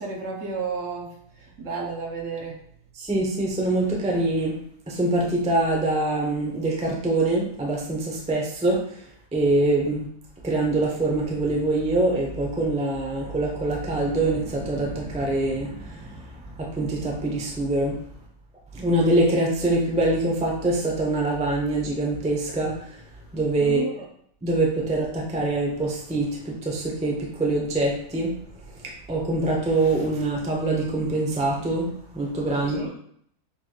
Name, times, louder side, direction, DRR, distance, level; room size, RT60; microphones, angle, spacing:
voice 1, 0.0-2.6 23.6-24.1 32.6-32.9, right 4 dB, 60° right, -1 dB, 1.0 m, -32 dB
voice 2, 3.0-4.6 4.9-8.8 9.3-10.1 10.4-18.0 18.7-22.7 23.3-23.8 24.4-28.4 29.1-32.9, right 2 dB, 10° right, -2 dB, 0.4 m, -24 dB
6.7 x 3.1 x 2.3 m, 0.67 s
omnidirectional pair, 1.7 m